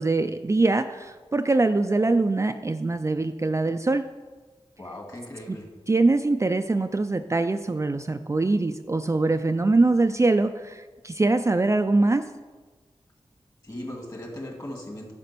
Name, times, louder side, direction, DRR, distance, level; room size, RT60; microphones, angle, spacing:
voice 1, 0.0-4.0 5.5-5.6 5.9-12.2, right 3 dB, 25° right, 7 dB, 0.4 m, -23 dB
voice 2, 4.8-5.7 13.6-15.1, left 1 dB, 35° left, 1 dB, 2.4 m, -38 dB
12.0 x 5.2 x 6.8 m, 1.4 s
wide cardioid pair, 80°, 11 cm